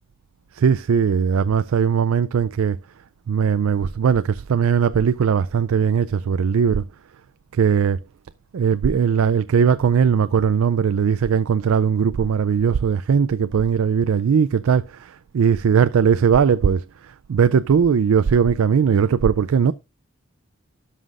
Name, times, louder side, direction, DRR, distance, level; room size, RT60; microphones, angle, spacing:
voice 1, 0.5-2.8 3.3-6.8 7.5-8.0 8.5-19.7, right 7 dB, 80° right, 0.4 m, -19 dB
16.0 x 5.7 x 2.5 m
head